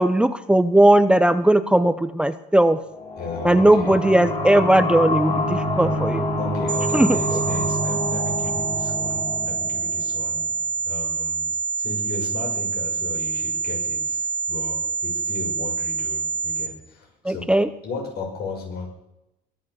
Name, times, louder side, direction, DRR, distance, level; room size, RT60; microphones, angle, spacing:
voice 1, 0.0-2.8 3.4-6.3 6.9-7.2 17.2-17.7, right 1 dB, 5° right, 12 dB, 0.7 m, -18 dB
sound 1, 2.9-10.3, left 1 dB, 35° left, 7.2 m, -27 dB
voice 2, 3.1-4.0 6.4-10.4 10.8-11.5 11.8-17.5 17.8-18.9, left 3 dB, 70° left, 2 dB, 6.4 m, -35 dB
sound 2, 6.7-16.7, right 5 dB, 50° right, 1.1 m, -26 dB
21.5 x 8.7 x 7.0 m, 0.87 s
cardioid pair, 110°, 17 cm